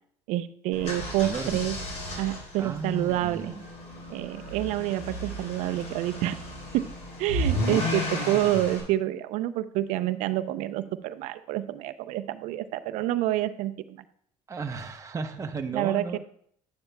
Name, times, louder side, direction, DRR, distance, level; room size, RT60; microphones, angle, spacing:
voice 1, 0.3-1.7 2.2-3.5 4.1-6.4 6.7-6.9 7.2-14.0 15.7-16.2, right 14 dB, 80° right, 12 dB, 0.5 m, -28 dB
sound 1, 0.7-8.8, equal, 70° left, 3.9 m, -33 dB
voice 2, 1.2-1.6 2.6-3.6 14.5-16.2, right 4 dB, 25° right, 4 dB, 0.8 m, -34 dB
11.0 x 8.7 x 2.2 m, 0.64 s
supercardioid pair, 80°, 12 cm